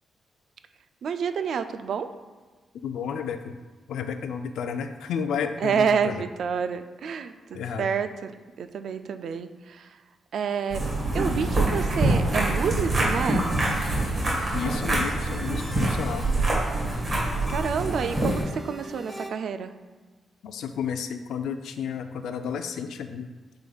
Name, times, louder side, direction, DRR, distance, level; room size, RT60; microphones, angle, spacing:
voice 1, 1.0-2.1 5.6-8.3 8.6-9.9 10.3-10.8 11.1-13.5 17.5-19.7, right 6 dB, 55° right, 10 dB, 0.3 m, -28 dB
voice 2, 2.8-3.6 3.9-6.2 7.5-7.9 14.5-16.3 20.4-23.3, left 7 dB, 90° left, 8 dB, 0.4 m, -32 dB
sound 1, 10.7-18.4, right 2 dB, 35° right, 1.6 m, -25 dB
sound 2, 13.0-19.3, equal, 5° left, 0.6 m, -42 dB
8.1 x 5.1 x 2.3 m, 1.3 s
wide cardioid pair, 175°, 0 cm